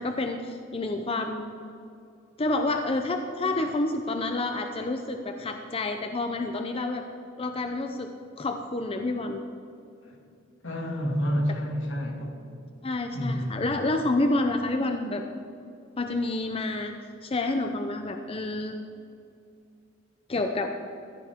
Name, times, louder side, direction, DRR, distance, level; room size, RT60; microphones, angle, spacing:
voice 1, 0.0-1.6 2.4-7.0 7.4-8.1 8.4-9.4 12.8-15.2 16.0-16.9 17.2-18.7 20.3-20.7, left 2 dB, 30° left, 5 dB, 0.6 m, -28 dB
voice 2, 10.6-12.4 13.1-13.7, equal, 75° left, 1 dB, 2.2 m, -29 dB
15.5 x 13.5 x 3.6 m, 2.6 s
head